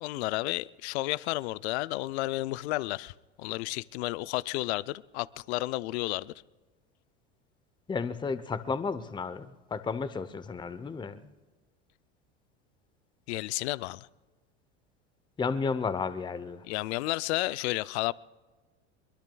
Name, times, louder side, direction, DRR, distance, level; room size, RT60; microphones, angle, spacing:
voice 1, 0.0-6.3 13.3-14.1 16.7-18.1, left 19 dB, 65° left, 0.5 m, -32 dB
voice 2, 7.9-11.3 15.4-16.6, left 5 dB, 15° left, 0.7 m, -33 dB
23.0 x 22.5 x 2.3 m
hypercardioid pair, 90°, 35 cm